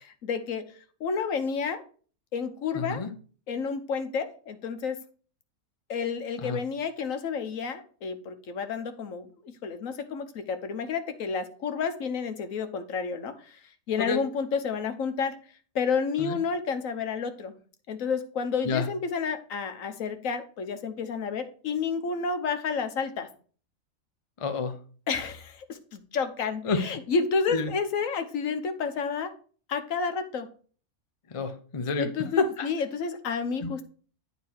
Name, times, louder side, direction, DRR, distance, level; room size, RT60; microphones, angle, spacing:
voice 1, 0.1-0.7 1.0-1.8 2.3-3.0 3.5-5.0 5.9-13.6 13.9-15.4 15.7-17.5 17.9-23.3 25.1-29.3 29.7-30.5 32.0-33.9, left 5 dB, 70° left, 8 dB, 1.3 m, -30 dB
voice 2, 2.7-3.1 6.4-6.6 14.0-14.2 16.2-16.4 18.6-18.9 24.4-24.8 26.6-26.8 27.5-27.7 31.3-32.7 33.6-33.7, left 4 dB, 30° left, 7 dB, 0.6 m, -29 dB
9.5 x 4.0 x 4.6 m, 0.41 s
omnidirectional pair, 1.5 m